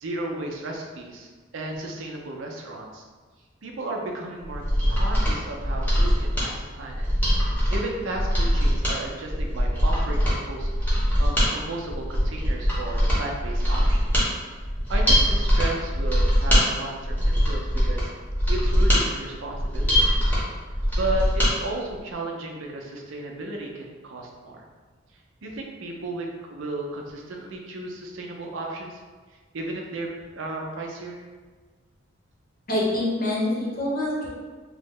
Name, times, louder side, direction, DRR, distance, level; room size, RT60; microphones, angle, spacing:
voice 1, 0.0-3.0 3.6-4.6 4.9-7.1 7.7-14.0 14.9-18.1 18.5-20.1 21.0-24.6 25.4-29.0 29.5-30.1 30.3-31.2, right 2 dB, 75° right, 0 dB, 0.5 m, -34 dB
Mechanisms, 4.4-21.5 21.9-22.0, equal, 10° left, 0.8 m, -22 dB
voice 2, 32.7-34.3, left 1 dB, 45° left, -5 dB, 0.8 m, -25 dB
3.1 x 2.0 x 3.6 m, 1.4 s
head